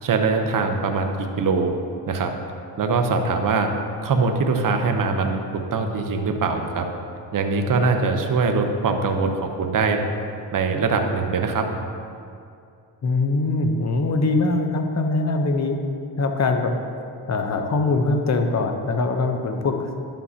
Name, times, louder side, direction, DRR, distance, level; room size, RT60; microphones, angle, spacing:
voice 1, 0.0-1.7 2.1-2.3 2.8-3.7 4.0-5.4 5.7-6.9 7.3-10.0 10.5-11.6, right 4 dB, 45° right, 4 dB, 0.9 m, -22 dB
voice 2, 13.0-15.8 16.2-16.7 17.3-19.9, left 3 dB, 35° left, 5 dB, 0.9 m, -22 dB
11.0 x 7.3 x 2.9 m, 2.4 s
cardioid pair, 85°, 45 cm